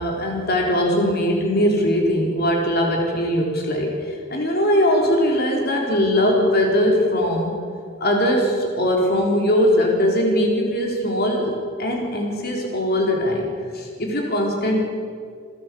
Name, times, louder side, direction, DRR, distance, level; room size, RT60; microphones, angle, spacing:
voice 1, 0.0-7.6 8.0-14.8, equal, 50° left, 0 dB, 4.3 m, -20 dB
28.0 x 12.0 x 8.6 m, 2.1 s
head